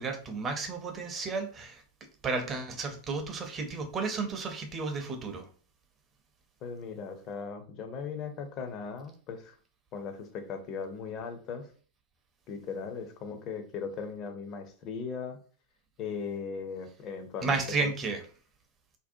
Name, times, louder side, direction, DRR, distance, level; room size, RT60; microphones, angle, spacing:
voice 1, 0.0-1.8 2.2-5.5 17.4-18.2, right 4 dB, 25° right, 5 dB, 0.5 m, -32 dB
voice 2, 6.6-9.5 9.9-11.7 12.5-15.4 16.0-17.9, left 5 dB, 35° left, 7 dB, 0.4 m, -38 dB
2.6 x 2.1 x 2.6 m, 0.42 s
figure-of-eight pair, 90°, 0 cm